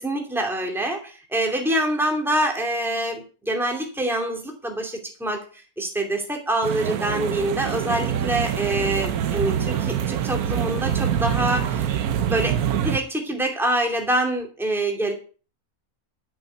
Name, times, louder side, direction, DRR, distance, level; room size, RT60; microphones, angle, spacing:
voice 1, 0.0-11.9 12.3-15.1, right 1 dB, ahead, 2 dB, 2.7 m, -25 dB
sound 1, 6.6-13.0, right 9 dB, 80° right, 1.3 m, -25 dB
13.0 x 6.5 x 8.0 m, 0.39 s
omnidirectional pair, 1.6 m